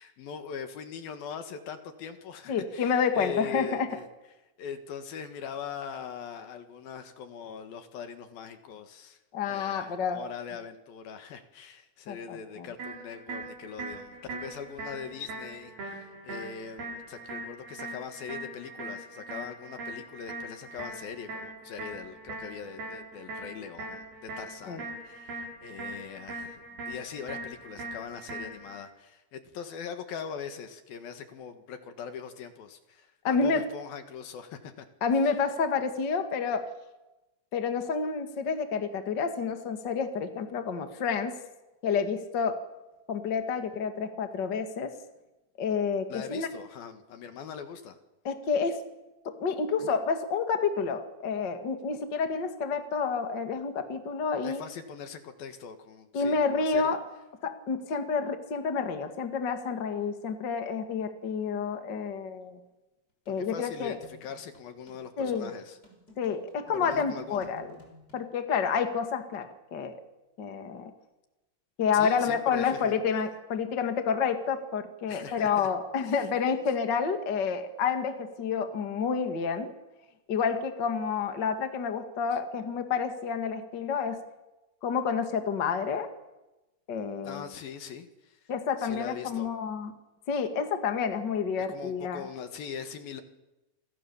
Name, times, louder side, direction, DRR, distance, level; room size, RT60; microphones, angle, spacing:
voice 1, 0.0-4.1 4.6-9.2 9.5-34.9 46.1-48.0 54.4-56.9 63.4-65.8 66.7-67.5 71.9-72.9 75.1-75.7 76.0-76.3 87.2-88.4 88.8-89.5 91.6-93.2, left 7 dB, 60° left, 8 dB, 2.8 m, -41 dB
voice 2, 2.5-3.9 9.3-10.2 12.1-12.7 24.7-24.8 33.2-33.6 35.0-36.7 37.5-41.3 41.8-42.6 43.1-44.9 45.6-46.5 48.2-48.8 49.2-54.6 56.1-57.0 57.4-62.6 63.3-64.0 65.2-65.5 66.2-67.7 68.1-70.0 70.4-70.9 71.8-79.7 80.3-84.2 84.8-86.1 86.9-87.4 88.5-89.9 90.3-92.2, left 6 dB, 80° left, 6 dB, 1.0 m, -29 dB
sound 1, 12.8-28.8, right 2 dB, 50° right, 9.1 m, -41 dB
sound 2, 63.2-68.2, left 1 dB, 20° left, 6.4 m, -55 dB
29.5 x 25.5 x 7.1 m, 1.0 s
omnidirectional pair, 6.0 m